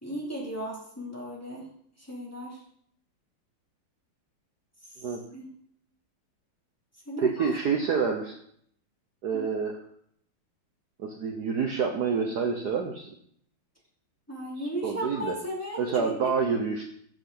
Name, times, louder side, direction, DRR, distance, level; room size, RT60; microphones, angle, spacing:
voice 1, 0.0-1.7 2.0-2.6 5.3-5.5 7.1-7.5 9.3-9.4 14.3-16.3, right 1 dB, 5° left, -4 dB, 2.8 m, -35 dB
voice 2, 7.2-8.4 9.2-9.8 11.0-13.1 14.6-15.3 15.8-16.8, right 5 dB, 55° right, 3 dB, 1.3 m, -28 dB
14.5 x 7.3 x 3.9 m, 0.65 s
omnidirectional pair, 2.3 m